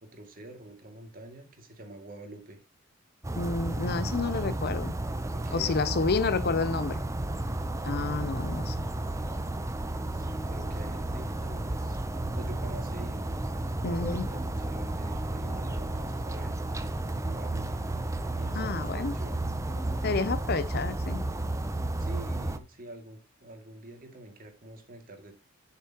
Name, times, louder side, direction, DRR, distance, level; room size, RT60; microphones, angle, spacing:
voice 1, 0.0-2.6 5.3-6.1 10.1-12.0 12.3-13.3 13.8-16.6 17.2-17.8 18.3-19.4 22.0-25.4, right 1 dB, 45° right, 2.3 m, -46 dB
sound 1, 3.2-22.6, right 1 dB, 15° right, 0.6 m, -32 dB
voice 2, 3.4-4.9 5.5-7.0 7.8-8.9 13.8-14.3 18.5-19.1 20.0-21.2, left 4 dB, 50° left, 0.6 m, -30 dB
Organ, 13.1-22.2, left 1 dB, 20° left, 3.3 m, -50 dB
11.5 x 6.9 x 3.0 m
head